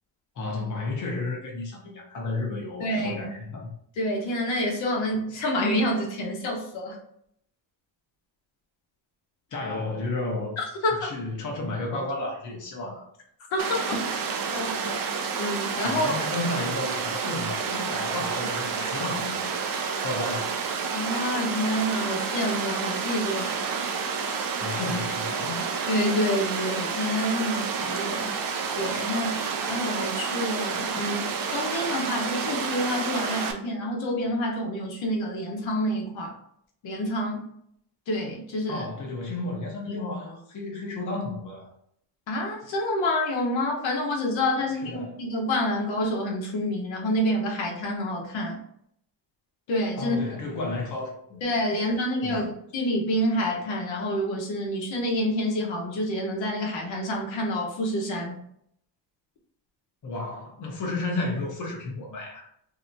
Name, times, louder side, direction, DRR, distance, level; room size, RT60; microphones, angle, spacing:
voice 1, 0.3-3.7 9.5-10.6 10.9-13.1 15.8-19.5 20.0-20.6 24.6-25.7 38.7-41.7 44.7-45.2 50.0-51.4 52.2-52.6 60.0-62.5, left 2 dB, 45° left, 0.8 m, -32 dB
voice 2, 2.8-3.3 4.0-7.0 10.6-11.1 13.5-14.2 14.5-14.9 15.4-16.1 20.9-23.6 25.9-28.3 28.7-36.3 36.8-37.5 38.1-38.8 42.3-48.6 49.7-50.2 51.4-52.4 52.7-58.3, left 1 dB, 90° left, 0.9 m, -28 dB
Water, 13.6-33.5, right 5 dB, 50° right, 0.5 m, -29 dB
3.2 x 2.8 x 2.6 m
wide cardioid pair, 170°, 44 cm